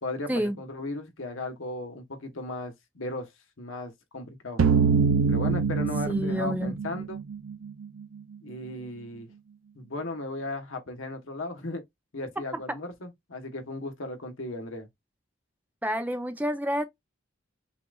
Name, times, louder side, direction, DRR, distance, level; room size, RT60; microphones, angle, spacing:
voice 1, 0.6-3.3 3.6-4.6 5.3-7.2 8.4-9.3 9.7-11.8 12.1-14.9, left 2 dB, 85° left, 1.2 m, -36 dB
sound 1, 4.6-7.5, right 5 dB, 85° right, 0.5 m, -24 dB
voice 2, 6.1-6.7 12.5-12.6 15.8-16.8, equal, 10° right, 0.6 m, -28 dB
5.6 x 2.5 x 2.3 m
head